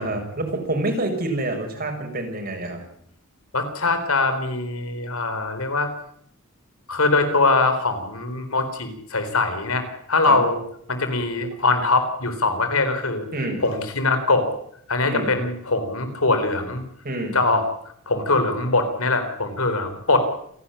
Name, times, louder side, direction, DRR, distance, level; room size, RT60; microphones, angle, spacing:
voice 1, 0.0-2.8 10.3-10.4 13.3-13.6 15.0-15.3 17.0-17.4, right 2 dB, 45° right, 3 dB, 6.4 m, -27 dB
voice 2, 3.5-5.9 6.9-10.6 10.9-13.2 13.6-14.5 14.9-16.8 17.3-17.6 18.1-20.2, left 3 dB, 85° left, 8 dB, 4.1 m, -22 dB
28.5 x 11.5 x 10.0 m, 0.70 s
head